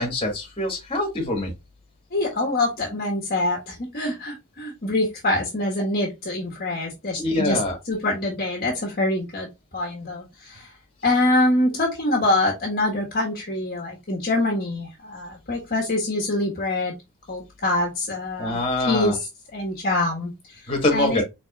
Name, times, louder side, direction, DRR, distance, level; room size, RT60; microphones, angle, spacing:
voice 1, 0.0-1.5 7.2-7.8 18.4-19.2 20.7-21.2, left 2 dB, 25° left, 1.9 m, -24 dB
voice 2, 2.1-7.6 7.9-10.7 11.0-16.9 17.3-20.6 20.9-21.2, left 2 dB, 40° left, 1.5 m, -25 dB
4.9 x 3.9 x 2.4 m
head